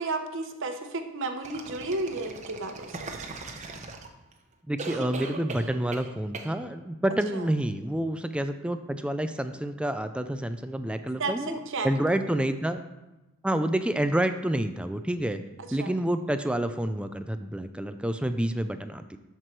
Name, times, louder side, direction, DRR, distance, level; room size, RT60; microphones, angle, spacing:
voice 1, 0.0-3.1 7.3-7.4 11.2-12.0 15.7-15.9, right 3 dB, 60° right, 7 dB, 0.9 m, -32 dB
sound 1, 1.4-4.3 4.8-6.1 6.3-6.5, right 3 dB, 35° right, 0.8 m, -39 dB
voice 2, 4.7-11.6 11.8-12.8 13.4-15.4 15.7-19.2, right 1 dB, 5° right, 9 dB, 0.3 m, -28 dB
12.5 x 4.6 x 4.5 m, 1.0 s
head